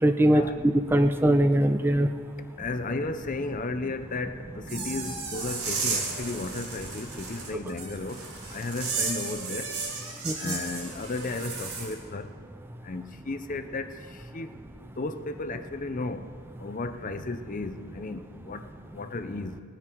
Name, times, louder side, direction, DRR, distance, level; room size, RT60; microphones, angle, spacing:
voice 1, 0.0-2.1 10.2-10.6, right 1 dB, 10° right, 8 dB, 0.4 m, -22 dB
voice 2, 2.6-9.7 10.4-12.3 12.8-14.6 15.0-16.3 16.6-19.6, left 3 dB, 40° left, 10 dB, 0.6 m, -34 dB
sound 1, 4.6-11.9, right 4 dB, 85° right, 3.5 m, -34 dB
19.5 x 9.6 x 4.6 m, 2.1 s
head